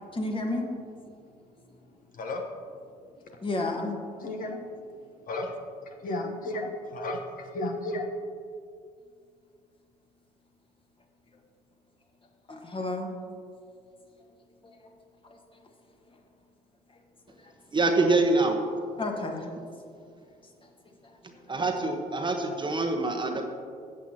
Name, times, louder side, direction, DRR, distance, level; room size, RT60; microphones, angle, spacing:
voice 1, 0.1-0.7 3.4-4.0 12.5-13.1 14.6-14.8 15.2-15.7 16.1-16.2 16.9-17.0 17.4-17.5 19.0-19.5 20.6-21.4, left 2 dB, 25° left, 2 dB, 1.5 m, -33 dB
voice 2, 1.1-3.5 4.2-8.1, left 1 dB, 40° left, 3 dB, 1.1 m, -36 dB
voice 3, 17.7-18.6 21.2-23.4, right 2 dB, 20° right, 3 dB, 1.1 m, -25 dB
14.5 x 8.5 x 2.9 m, 2.3 s
figure-of-eight pair, 55°, 21 cm